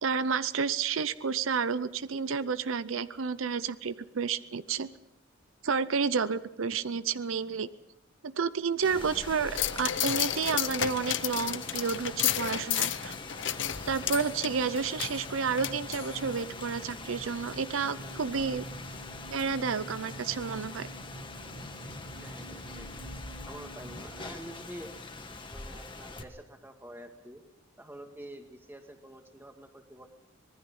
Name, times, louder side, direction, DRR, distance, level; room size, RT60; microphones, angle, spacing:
voice 1, 0.0-4.9 5.6-7.7 8.2-13.2 13.9-18.7 19.3-20.9, right 5 dB, 80° right, 15 dB, 0.6 m, -30 dB
Rain, 8.8-26.2, left 3 dB, 25° left, 1.5 m, -43 dB
sound 1, 9.6-16.4 16.8-16.9, left 11 dB, 65° left, 0.8 m, -32 dB
sound 2, 13.2-25.6, right 1 dB, 60° right, 3.2 m, -48 dB
voice 2, 22.2-22.9 23.5-24.9 25.5-27.4 27.8-30.1, right 1 dB, 10° right, 4 dB, 2.0 m, -47 dB
25.0 x 20.0 x 5.4 m, 0.86 s
head